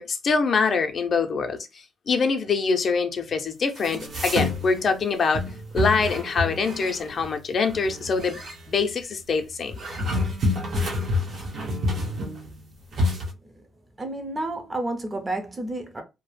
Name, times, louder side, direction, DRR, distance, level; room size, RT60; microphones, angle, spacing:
voice 1, 0.0-1.6 2.1-5.4 5.7-8.4 8.7-9.7, left 4 dB, 50° left, 0.5 m, -24 dB
sound 1, 3.8-4.9 5.3-7.3 7.6-8.6 9.7-12.6 12.9-13.3, left 2 dB, 55° right, 0.9 m, -28 dB
voice 2, 14.0-16.0, right 2 dB, 25° right, 0.7 m, -30 dB
2.3 x 2.1 x 3.2 m
cardioid pair, 90°, 0 cm